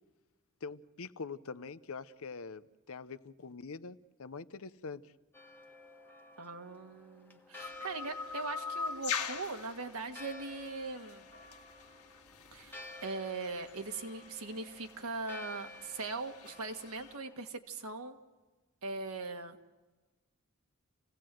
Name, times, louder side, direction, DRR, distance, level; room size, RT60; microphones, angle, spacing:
voice 1, 0.6-5.1, left 4 dB, 70° left, 14 dB, 0.7 m, -44 dB
Church bell, 5.3-17.5, left 2 dB, 10° left, 1.4 m, -53 dB
voice 2, 6.4-11.3 12.5-18.2 18.8-19.6, right 3 dB, 75° right, 5 dB, 1.8 m, -40 dB
sound 1, 7.6-17.2, left 6 dB, 90° left, 1.8 m, -44 dB
28.0 x 17.5 x 7.7 m, 1.2 s
head